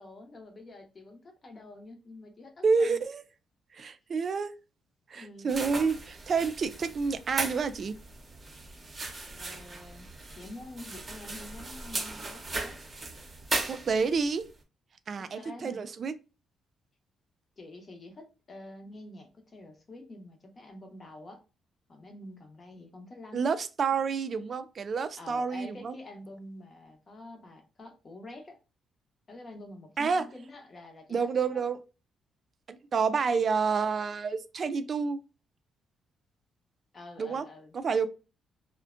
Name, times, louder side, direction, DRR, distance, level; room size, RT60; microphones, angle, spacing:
voice 1, 0.0-3.0 3.8-3.9 5.2-5.6 9.3-10.1 10.4-12.8 15.2-15.9 17.6-21.4 21.9-23.5 25.2-28.6 29.3-31.6 36.9-37.7 38.0-38.1, left 2 dB, 35° left, 0.7 m, -47 dB
voice 2, 2.6-3.2 3.7-4.5 5.1-7.9 13.7-14.4 15.1-16.1 23.3-25.9 30.0-30.3 31.1-31.8 32.7-35.2 37.2-37.4 37.7-38.1, right 5 dB, 45° right, 0.3 m, -29 dB
sound 1, 5.5-14.3, right 2 dB, 30° right, 0.7 m, -38 dB
2.6 x 2.1 x 2.4 m
cardioid pair, 115°, 0 cm